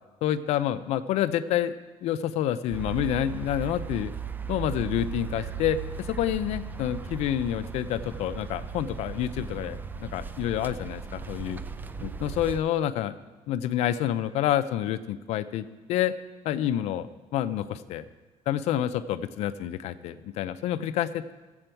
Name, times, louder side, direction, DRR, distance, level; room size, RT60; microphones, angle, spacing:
voice 1, 0.2-1.7 2.0-4.1 4.5-11.6 12.2-13.2 13.5-16.1 16.4-18.0 18.5-21.3, left 11 dB, 75° left, 11 dB, 0.5 m, -28 dB
sound 1, 2.7-12.6, right 6 dB, 15° right, 0.4 m, -37 dB
14.0 x 7.8 x 4.5 m, 1.2 s
cardioid pair, 120°, 11 cm